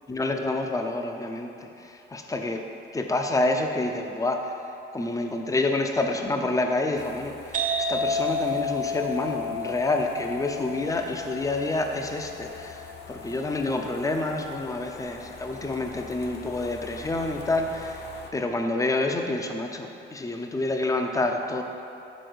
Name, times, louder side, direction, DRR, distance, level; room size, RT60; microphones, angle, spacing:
voice 1, 0.1-2.6 2.9-4.6 4.9-18.0 18.3-21.6, left 2 dB, 15° left, 4 dB, 0.6 m, -28 dB
sound 1, 7.0-18.3, left 4 dB, 55° left, 0.7 m, -45 dB
sound 2, 7.5-15.0, left 2 dB, 40° right, 0.8 m, -32 dB
6.1 x 4.2 x 5.0 m, 2.7 s
cardioid pair, 90°, 20 cm